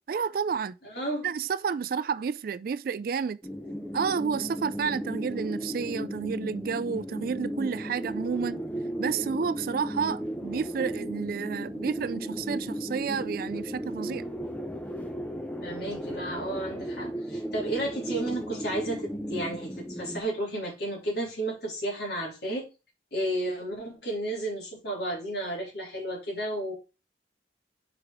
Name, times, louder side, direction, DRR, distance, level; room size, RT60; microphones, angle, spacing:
voice 1, 0.1-0.7 1.2-3.4 3.9-8.6 9.0-14.2, right 6 dB, 50° right, 0.3 m, -30 dB
voice 2, 0.8-1.3 15.6-22.7 23.1-26.7, right 1 dB, 55° left, 3.0 m, -32 dB
sound 1, 3.4-20.2, equal, 10° left, 0.6 m, -35 dB
4.9 x 4.8 x 4.9 m
head